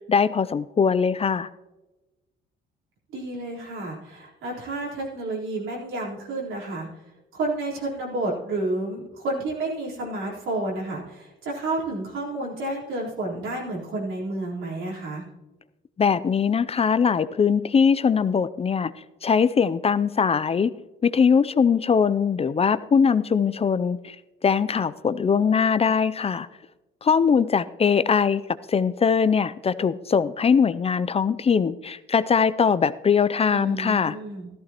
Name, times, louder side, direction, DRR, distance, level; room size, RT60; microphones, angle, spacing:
voice 1, 0.1-1.5 16.0-18.9 19.2-20.7 21.0-24.2 24.4-26.5 27.0-28.4 28.7-34.2, left 6 dB, 30° left, 15 dB, 0.4 m, -21 dB
voice 2, 3.1-7.0 7.3-15.2 33.5-34.5, right 2 dB, 85° right, -5 dB, 3.9 m, -30 dB
14.0 x 13.5 x 3.0 m, 1.1 s
cardioid pair, 90°, 20 cm